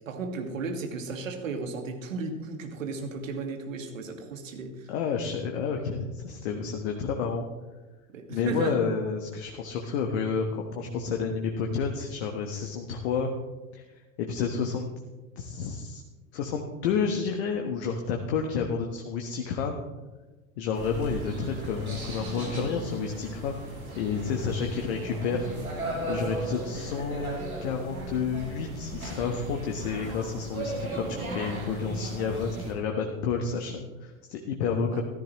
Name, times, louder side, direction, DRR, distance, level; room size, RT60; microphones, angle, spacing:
voice 1, 0.1-4.9 8.1-8.8 34.9-35.0, right 4 dB, 65° right, 4 dB, 2.0 m, -35 dB
voice 2, 4.9-7.4 8.3-13.3 13.7-13.8 14.2-14.9 15.4-16.0 16.3-19.8 20.6-23.6 24.0-25.5 26.1-35.0, left 5 dB, 50° left, 3 dB, 1.4 m, -30 dB
sound 1, 20.7-32.7, right 2 dB, 85° right, 3.1 m, -36 dB
15.0 x 13.0 x 3.1 m, 1.2 s
figure-of-eight pair, 90°, 42 cm